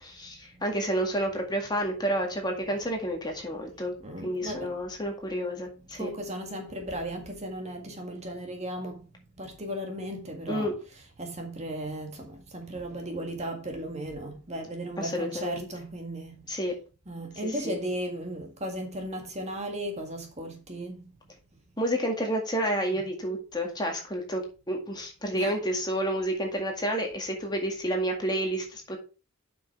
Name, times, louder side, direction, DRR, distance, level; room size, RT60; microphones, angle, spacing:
voice 1, 0.0-3.9 4.2-6.1 10.5-10.7 15.0-15.7 16.5-16.7 17.6-17.8 21.8-29.0, right 1 dB, 20° left, 2.0 m, -30 dB
voice 2, 2.5-2.9 3.5-3.6 4.0-4.8 5.9-9.1 9.4-16.4 17.1-21.1 22.8-23.1 25.3-25.6, right 1 dB, 30° right, 1.9 m, -36 dB
7.8 x 6.3 x 4.4 m
head